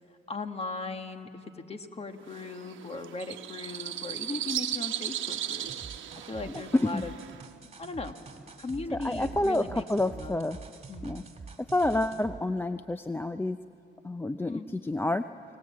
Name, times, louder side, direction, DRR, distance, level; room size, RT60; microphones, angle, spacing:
voice 1, 0.3-5.7 6.3-7.1 7.8-8.1 8.6-10.4 10.9-11.1 14.5-14.7, left 3 dB, 30° left, 7 dB, 1.7 m, -38 dB
sound 1, 2.3-7.4, right 11 dB, 75° right, 1.1 m, -36 dB
sound 2, 5.7-12.4, right 4 dB, 30° right, 2.2 m, -45 dB
voice 2, 6.4-7.0 8.9-10.6 11.0-11.2 11.7-13.6 14.0-15.2, left 2 dB, 10° left, 10 dB, 0.6 m, -28 dB
29.5 x 19.0 x 8.5 m, 2.4 s
cardioid pair, 90°, 20 cm